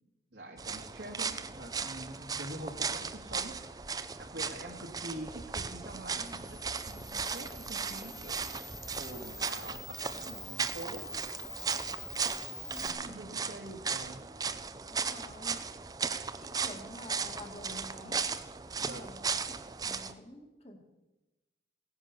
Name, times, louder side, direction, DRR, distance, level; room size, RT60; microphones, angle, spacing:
voice 1, 0.3-3.8 4.2-6.6 6.9-8.4 9.0-11.1 12.8-14.2 18.8-19.1, right 1 dB, 70° right, 1 dB, 2.0 m, -45 dB
sound 1, 0.6-20.1, right 5 dB, 20° right, 0.5 m, -37 dB
Camera, 5.9-12.9, left 4 dB, 10° left, 0.8 m, -47 dB
voice 2, 12.7-13.3 14.9-15.6 16.4-18.2 18.8-20.8, left 1 dB, 30° left, 4 dB, 2.0 m, -48 dB
17.5 x 10.5 x 6.8 m, 1.1 s
head